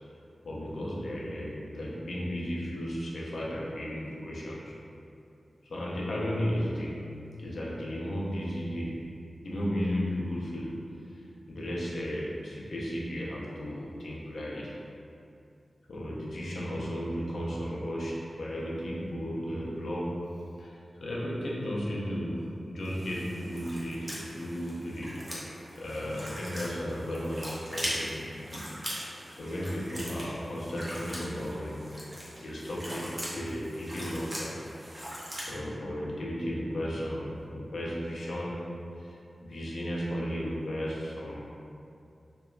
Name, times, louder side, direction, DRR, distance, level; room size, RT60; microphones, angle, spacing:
voice 1, 0.4-4.7 5.6-7.1 7.4-9.1 9.4-10.8 11.1-11.2 11.5-14.8 15.9-20.3 20.6-25.2 25.8-28.7 29.4-31.8 32.4-34.6 35.5-38.7 39.0-41.4, equal, 85° left, -5 dB, 0.5 m, -34 dB
sound 1, 22.8-35.5, equal, 30° right, 0.6 m, -40 dB
2.9 x 2.2 x 2.4 m, 2.6 s
wide cardioid pair, 70°, 0 cm